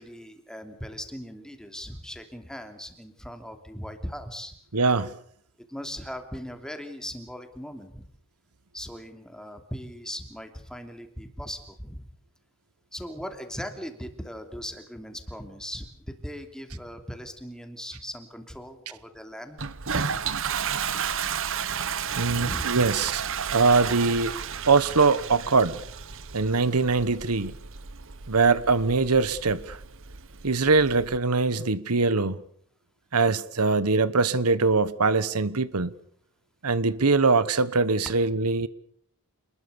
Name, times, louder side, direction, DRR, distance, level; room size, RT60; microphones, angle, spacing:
voice 1, 0.0-4.5 5.7-8.1 8.7-12.1 12.9-19.6 22.2-22.7, equal, 5° left, 2.9 m, -39 dB
voice 2, 4.7-5.1 22.2-23.1 23.5-24.3 24.7-25.8 26.3-27.5 28.3-29.8 30.4-32.4 33.1-35.9 36.6-38.7, right 4 dB, 85° right, 1.2 m, -22 dB
Toilet flush, 19.6-31.2, right 7 dB, 65° right, 1.2 m, -32 dB
27.5 x 21.0 x 7.0 m
head